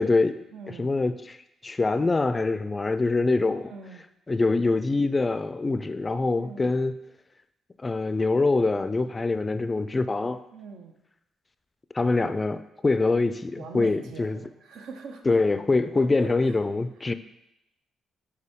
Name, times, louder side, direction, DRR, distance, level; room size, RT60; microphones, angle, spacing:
voice 1, 0.0-1.4 1.6-3.7 4.3-7.0 7.8-10.4 11.9-14.4 15.3-17.1, left 3 dB, 25° left, 12 dB, 0.3 m, -24 dB
voice 2, 0.5-0.9 3.5-4.0 6.4-6.8 10.5-10.9 13.6-15.4 16.0-16.5, right 4 dB, 85° right, 4 dB, 0.7 m, -42 dB
6.6 x 4.6 x 3.6 m, 0.86 s
cardioid pair, 90°, 0 cm